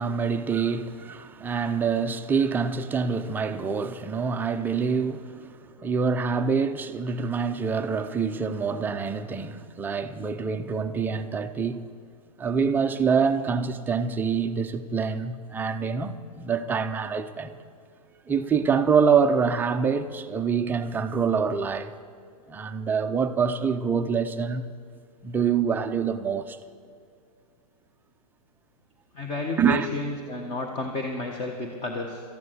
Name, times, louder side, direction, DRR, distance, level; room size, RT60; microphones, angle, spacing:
voice 1, 0.0-11.8 12.4-17.6 18.3-21.9 22.5-24.6 25.2-26.6 29.6-29.9, right 6 dB, 10° right, 0.5 m, -26 dB
voice 2, 29.1-32.2, left 2 dB, 25° left, 1.4 m, -31 dB
13.5 x 11.0 x 8.0 m
hypercardioid pair, 145°, 20 cm